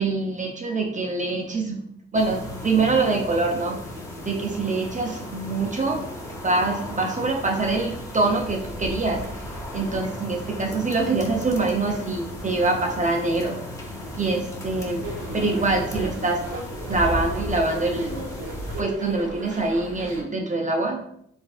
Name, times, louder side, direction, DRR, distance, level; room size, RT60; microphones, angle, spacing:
voice 1, 0.0-1.8 2.1-3.8 4.2-6.0 6.4-9.2 9.7-13.9 14.1-15.0 15.3-16.4 16.9-18.3 18.8-21.0, right 3 dB, 25° right, 1 dB, 0.6 m, -24 dB
sound 1, 2.1-18.8, left 1 dB, 10° left, 0.9 m, -35 dB
sound 2, 15.0-20.2, right 1 dB, 85° right, 1.3 m, -36 dB
4.9 x 3.3 x 2.4 m, 0.71 s
cardioid pair, 90°, 30 cm